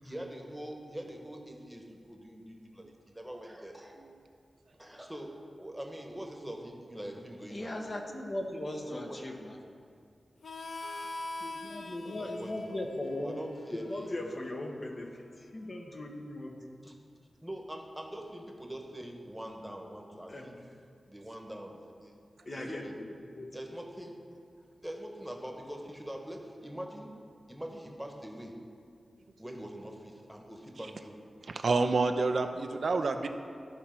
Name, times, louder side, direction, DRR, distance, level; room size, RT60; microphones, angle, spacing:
voice 1, 0.0-4.0 4.8-5.3 5.6-7.7 8.8-9.2 12.0-12.8 13.1-14.3 16.8-16.9 17.4-20.6 21.1-22.2 22.6-23.0 23.5-24.4 24.8-27.2 27.5-28.6 29.4-31.2, equal, 5° right, 2 dB, 1.2 m, -43 dB
voice 2, 7.5-9.6 11.4-13.4 13.7-16.7 20.3-20.5 22.5-23.5, left 1 dB, 45° left, 1 dB, 1.1 m, -38 dB
Harmonica, 10.4-15.7, left 2 dB, 75° left, 0.4 m, -44 dB
voice 3, 31.5-33.3, right 3 dB, 70° right, 6 dB, 0.5 m, -28 dB
12.5 x 4.3 x 5.8 m, 2.4 s
wide cardioid pair, 75°, 0 cm